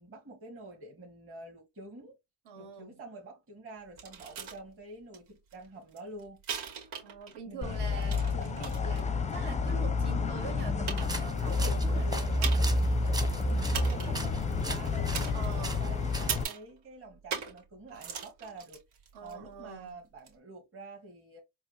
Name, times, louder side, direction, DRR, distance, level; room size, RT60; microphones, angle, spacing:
voice 1, 0.0-2.2 2.6-6.4 7.5-8.3 13.4-18.8 19.2-21.4, right 3 dB, 30° right, 2.1 m, -48 dB
voice 2, 2.4-3.0 7.0-12.6 14.0-14.4 15.3-15.9 19.1-20.0, right 5 dB, 60° right, 2.8 m, -44 dB
sound 1, 4.0-4.6 5.1-5.2 5.5-7.4 7.7-9.0 9.7-9.8 10.4-10.5 10.9-11.5 12.4-12.8 13.1-13.2 13.7-14.3 15.1-15.8 16.3-16.7 17.3-17.6 17.9-19.3 20.2-20.3, right 7 dB, 75° right, 2.6 m, -39 dB
sound 2, 7.6-16.4, left 3 dB, 15° left, 0.6 m, -29 dB
sound 3, 10.9-16.5, right 1 dB, 10° right, 1.1 m, -41 dB
4.6 x 3.0 x 2.9 m
supercardioid pair, 90°, 45 cm